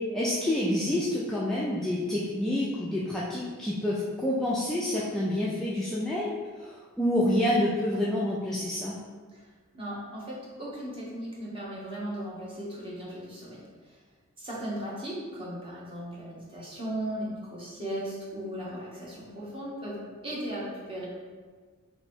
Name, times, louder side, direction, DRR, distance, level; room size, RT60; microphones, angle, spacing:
voice 1, 0.1-6.3 6.6-9.0, left 1 dB, ahead, -8 dB, 0.3 m, -28 dB
voice 2, 9.7-13.6 14.4-21.1, right 1 dB, 25° right, -6 dB, 0.9 m, -37 dB
3.0 x 2.7 x 4.4 m, 1.5 s
head